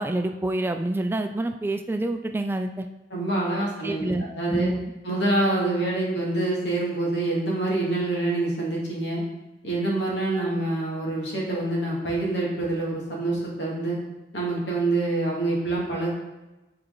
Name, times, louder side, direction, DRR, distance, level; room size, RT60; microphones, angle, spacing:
voice 1, 0.0-2.9 3.8-4.9, right 1 dB, 15° right, 6 dB, 0.3 m, -27 dB
voice 2, 3.1-4.7 5.0-9.2 9.6-14.0 14.3-16.1, right 2 dB, 80° left, -4 dB, 2.1 m, -26 dB
7.8 x 4.4 x 3.8 m, 1.0 s
head